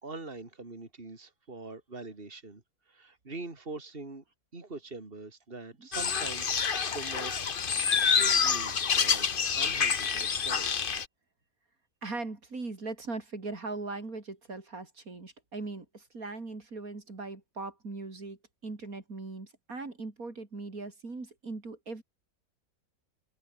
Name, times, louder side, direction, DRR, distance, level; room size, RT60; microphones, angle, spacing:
voice 1, 0.0-2.6 2.9-4.2 4.5-6.6 6.9-7.5 8.0-9.3 9.5-10.8, right 3 dB, 35° right, 3.6 m, -43 dB
sound 1, 5.9-11.0, left 6 dB, 40° left, 1.1 m, -27 dB
voice 2, 12.0-22.0, right 3 dB, 65° right, 4.0 m, -40 dB
omnidirectional pair, 1.6 m